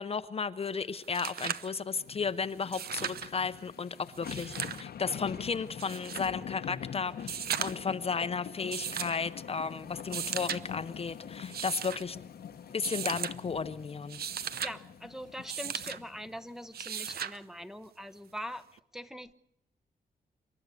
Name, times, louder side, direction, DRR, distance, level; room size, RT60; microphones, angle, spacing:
voice 1, 0.0-12.2 12.7-14.2, left 5 dB, 40° left, 12 dB, 0.7 m, -34 dB
sound 1, 0.7-0.8 1.0-1.7 2.6-3.3 4.1-4.8 5.8-6.3 7.2-7.9 8.7-9.2 10.0-10.6 11.4-12.0 12.8-13.3 14.0-14.7 15.5-16.0 16.7-17.4 18.8-18.9, right 8 dB, 75° right, 0.8 m, -36 dB
sound 2, 1.9-16.4 16.8-16.9, left 8 dB, 80° left, 1.1 m, -44 dB
voice 2, 14.6-18.6 18.9-19.3, equal, 5° right, 9 dB, 0.9 m, -42 dB
27.5 x 12.5 x 8.3 m, 0.76 s
wide cardioid pair, 130°, 16 cm